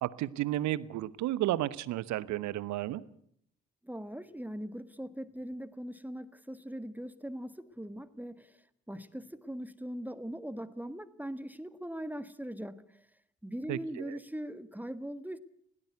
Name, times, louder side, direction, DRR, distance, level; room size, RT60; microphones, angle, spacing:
voice 1, 0.0-3.0 13.7-14.2, right 14 dB, 60° right, 19 dB, 1.0 m, -32 dB
voice 2, 3.8-13.1 13.4-15.4, equal, 5° right, 14 dB, 1.5 m, -41 dB
21.0 x 17.5 x 8.1 m, 0.68 s
figure-of-eight pair, 45°, 33 cm